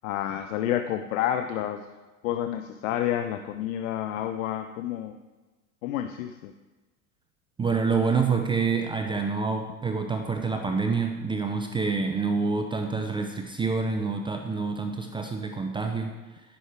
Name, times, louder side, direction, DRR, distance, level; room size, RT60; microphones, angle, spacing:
voice 1, 0.0-1.8 2.2-5.2 5.8-6.5, left 11 dB, 65° left, 7 dB, 0.6 m, -29 dB
voice 2, 7.6-16.4, right 4 dB, 10° right, 4 dB, 0.5 m, -27 dB
9.9 x 6.3 x 3.4 m, 1.2 s
hypercardioid pair, 85°, 43 cm